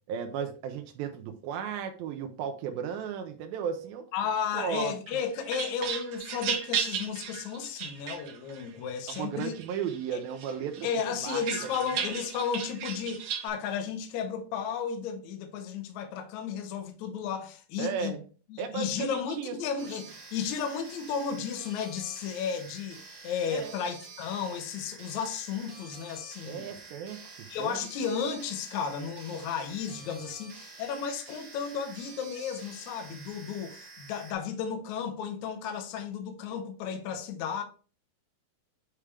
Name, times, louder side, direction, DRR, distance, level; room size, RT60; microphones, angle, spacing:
voice 1, 0.1-4.1 4.5-4.9 9.1-10.9 11.2-11.9 17.8-18.2 18.6-19.6 23.5-23.8 26.4-27.8, right 7 dB, 85° right, 2.4 m, -35 dB
voice 2, 4.1-9.5 10.1-10.2 10.8-18.1 18.5-23.0 23.2-26.7 27.5-37.6, left 7 dB, 70° left, 1.9 m, -33 dB
sound 1, 5.1-8.6 9.1-10.0 10.4-13.5, right 8 dB, 70° right, 2.3 m, -35 dB
sound 2, 19.8-34.3, right 3 dB, 45° right, 1.6 m, -48 dB
8.6 x 3.4 x 3.3 m
omnidirectional pair, 4.2 m